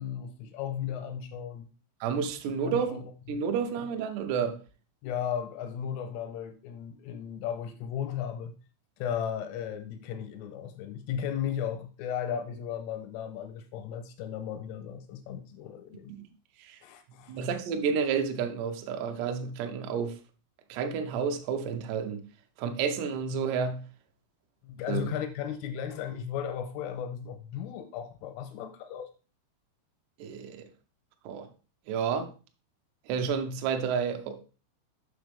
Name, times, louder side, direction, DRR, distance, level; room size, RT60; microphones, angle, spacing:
voice 1, 0.0-1.7 2.6-3.4 5.0-8.5 9.0-16.1 16.8-17.5 24.6-29.1, left 8 dB, 85° left, 3.2 m, -35 dB
voice 2, 2.0-3.0 3.3-4.6 16.2-16.3 16.6-16.8 17.3-20.2 20.7-22.2 22.6-23.9 24.9-25.0 30.2-30.7 31.3-31.5 31.9-32.3 33.1-34.4, right 6 dB, 80° right, 2.4 m, -30 dB
7.1 x 6.3 x 3.4 m
omnidirectional pair, 6.0 m